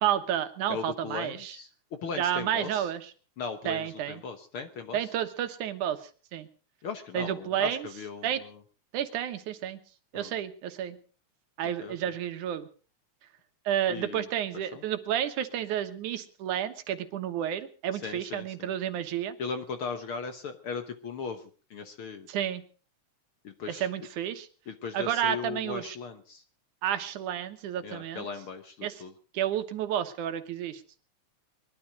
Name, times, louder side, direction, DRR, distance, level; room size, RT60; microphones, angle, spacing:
voice 1, 0.0-1.6 2.2-3.1 3.6-4.2 4.9-6.5 7.1-7.9 8.2-8.4 8.9-9.8 10.1-11.0 11.6-12.7 13.7-19.4 22.3-22.6 23.7-24.5 24.9-26.0 26.8-28.3 28.8-29.0 29.3-30.8, right 10 dB, 80° right, 9 dB, 2.7 m, -31 dB
voice 2, 0.7-1.7 2.0-2.9 3.4-5.1 6.8-8.6 10.1-10.3 11.6-11.9 13.9-14.3 14.7-14.8 18.0-18.7 19.4-22.3 23.4-23.9 24.7-26.4 27.8-29.1, left 5 dB, 55° left, 8 dB, 1.7 m, -38 dB
21.5 x 12.5 x 5.2 m, 0.39 s
omnidirectional pair, 3.5 m